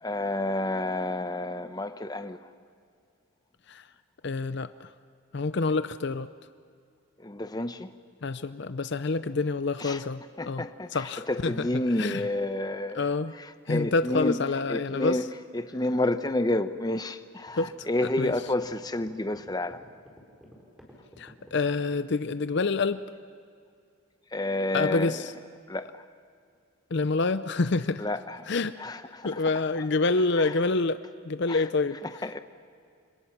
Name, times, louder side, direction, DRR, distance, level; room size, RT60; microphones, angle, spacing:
voice 1, 0.0-2.4 7.2-7.9 9.8-10.0 10.4-13.1 13.4-14.4 14.7-15.3 15.5-19.8 24.3-25.2 25.7-25.9 28.0-28.4 28.8-29.4 30.4-30.5 31.5-31.6 32.2-32.4, left 1 dB, 20° left, 10 dB, 0.8 m, -30 dB
voice 2, 4.2-4.9 5.3-6.3 8.2-10.6 10.9-11.7 12.0-12.3 12.9-13.3 13.7-15.2 17.6-17.7 18.2-18.3 21.2-23.0 24.7-25.3 26.9-28.0 28.5-28.8 29.2-31.0 31.3-32.0, left 3 dB, 55° left, 12 dB, 0.6 m, -27 dB
sound 1, 17.5-22.1, equal, ahead, 4.2 m, -51 dB
30.0 x 26.0 x 6.0 m, 2.4 s
head